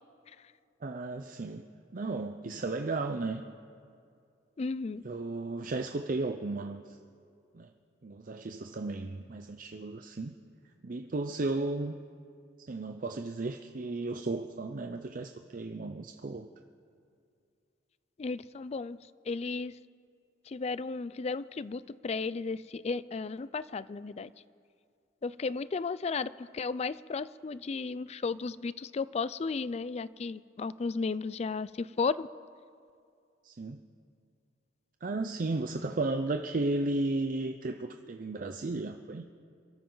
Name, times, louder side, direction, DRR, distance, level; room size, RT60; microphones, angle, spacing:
voice 1, 0.8-1.6 1.9-3.4 5.0-7.0 7.5-7.7 8.0-10.3 10.8-11.9 12.7-16.5 33.4-33.8 35.0-39.2, right 2 dB, 45° right, 6 dB, 0.5 m, -34 dB
voice 2, 4.6-5.0 18.2-19.0 19.3-19.7 20.5-24.3 25.2-32.3, left 4 dB, 35° left, 17 dB, 0.4 m, -34 dB
28.0 x 13.5 x 3.9 m, 2.4 s
head